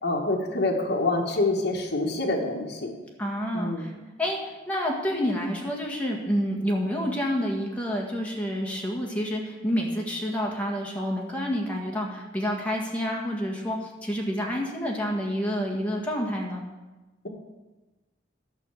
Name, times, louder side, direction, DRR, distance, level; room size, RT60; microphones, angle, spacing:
voice 1, 0.0-2.9 3.5-4.0, left 2 dB, 60° left, -1 dB, 1.5 m, -26 dB
voice 2, 3.2-3.9 4.2-16.6, equal, 5° left, -2 dB, 1.7 m, -28 dB
12.0 x 5.6 x 6.8 m, 1.2 s
head